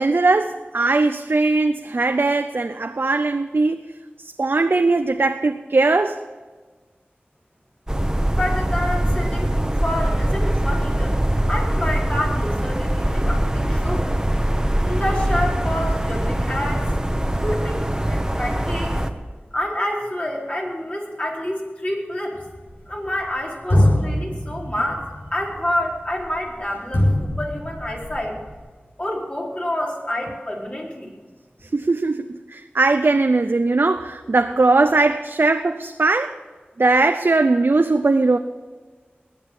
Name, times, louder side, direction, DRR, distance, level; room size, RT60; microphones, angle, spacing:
voice 1, 0.0-3.8 4.2-6.2 31.7-36.4 36.8-38.4, right 3 dB, 70° right, 7 dB, 0.6 m, -19 dB
sound 1, 7.9-19.1, right 1 dB, 15° right, 1.2 m, -22 dB
voice 2, 8.1-11.2 11.5-14.2 14.8-16.9 17.4-19.0 19.5-22.4 22.9-28.4 29.0-31.1, left 1 dB, 35° left, -3 dB, 4.4 m, -28 dB
sound 2, 22.4-23.3 23.7-28.6, left 1 dB, 90° left, 4.3 m, -23 dB
20.0 x 7.9 x 6.7 m, 1.4 s
wide cardioid pair, 45°, 4 cm